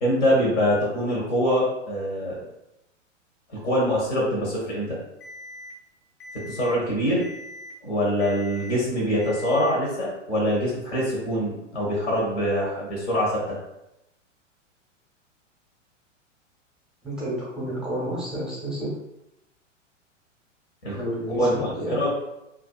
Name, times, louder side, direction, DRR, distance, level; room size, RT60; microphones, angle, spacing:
voice 1, 0.0-2.4 3.5-5.0 6.5-7.3 7.8-13.6 20.8-21.0 21.4-22.1, equal, 65° left, -4 dB, 1.0 m, -24 dB
Alarm, 5.2-5.7 6.2-6.7 7.2-7.7 8.2-8.7 9.2-9.7, left 1 dB, 45° left, 0.6 m, -41 dB
voice 2, 17.0-18.9 20.9-22.1, equal, ahead, -8 dB, 0.7 m, -30 dB
2.5 x 2.3 x 2.3 m, 0.88 s
figure-of-eight pair, 100°, 38 cm